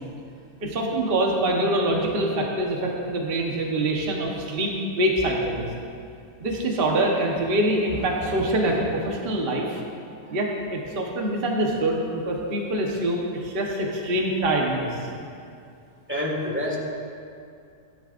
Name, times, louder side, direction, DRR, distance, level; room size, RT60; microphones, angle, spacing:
voice 1, 0.6-5.7 6.4-9.8 10.3-15.0, right 1 dB, 35° right, -1 dB, 1.3 m, -25 dB
voice 2, 16.1-16.8, left 1 dB, 5° right, -3 dB, 1.7 m, -27 dB
17.0 x 11.0 x 2.6 m, 2.4 s
omnidirectional pair, 1.8 m